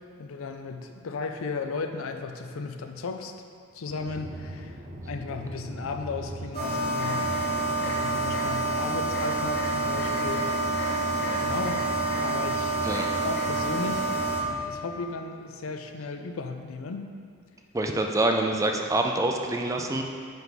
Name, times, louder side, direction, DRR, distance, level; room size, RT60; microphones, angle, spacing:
voice 1, 0.2-3.3 3.7-7.4 7.8-10.5 11.4-11.8 12.2-12.8 13.2-14.1 14.7-17.1, left 4 dB, 75° left, 6 dB, 0.5 m, -35 dB
sound 1, 4.0-14.6, right 1 dB, 35° right, 1.1 m, -40 dB
sound 2, 6.5-14.4, right 2 dB, 50° left, 1.6 m, -28 dB
voice 2, 17.7-20.0, right 2 dB, 15° right, 3 dB, 0.4 m, -26 dB
9.0 x 3.4 x 4.0 m, 2.1 s
head